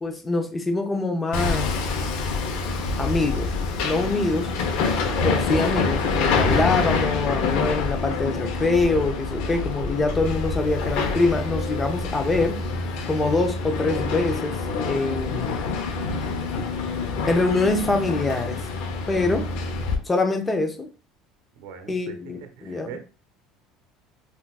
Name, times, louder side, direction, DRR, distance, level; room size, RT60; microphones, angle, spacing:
voice 1, 0.0-1.7 3.0-3.5 3.8-4.5 5.2-12.6 13.1-14.6 14.9-15.6 17.3-18.6 19.1-19.5 20.1-20.9 21.9-23.0, left 2 dB, 15° left, 5 dB, 0.5 m, -24 dB
Hammer, 1.3-20.0, left 4 dB, 70° left, 0.6 m, -26 dB
voice 2, 21.5-22.2 22.6-23.0, right 7 dB, 85° right, 7 dB, 0.7 m, -41 dB
3.7 x 2.3 x 2.4 m, 0.35 s
cardioid pair, 155°, 0 cm